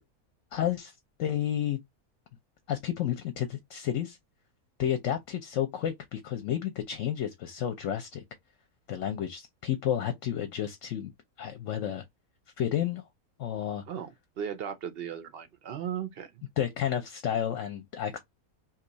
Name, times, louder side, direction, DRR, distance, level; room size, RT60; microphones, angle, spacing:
voice 1, 0.5-0.9 1.2-1.8 2.7-4.2 4.8-8.2 8.9-11.1 11.4-12.0 12.6-13.0 13.4-13.8 16.6-18.2, left 10 dB, 65° left, 0.9 m, -31 dB
voice 2, 13.9-16.3, right 8 dB, 65° right, 0.6 m, -36 dB
2.8 x 2.3 x 3.8 m
omnidirectional pair, 1.6 m